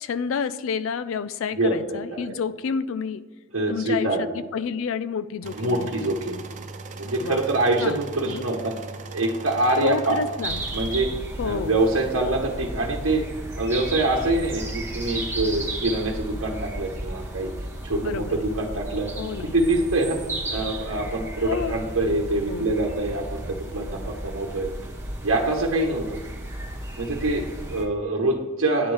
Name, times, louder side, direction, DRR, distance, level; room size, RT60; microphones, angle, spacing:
voice 1, 0.0-3.2 3.7-4.3 4.5-6.1 7.2-7.4 7.8-8.6 9.8-10.6 11.4-11.8 18.0-18.3 19.2-19.8 20.3-20.4 21.4-21.8 22.5-22.7, left 6 dB, 70° left, 13 dB, 0.4 m, -29 dB
voice 2, 1.6-2.3 3.5-4.3 5.5-6.4 7.0-8.7 9.1-10.2 10.7-11.1 11.4-13.2 13.6-17.5 17.8-19.1 19.5-20.2 20.5-23.4 23.7-24.7 25.2-26.2 27.0-28.9, right 2 dB, 80° right, -2 dB, 1.0 m, -25 dB
sound 1, 5.4-11.0, right 3 dB, 35° right, 0.6 m, -39 dB
sound 2, 10.4-27.9, right 1 dB, 15° right, 1.2 m, -34 dB
9.5 x 3.4 x 6.2 m, 1.3 s
head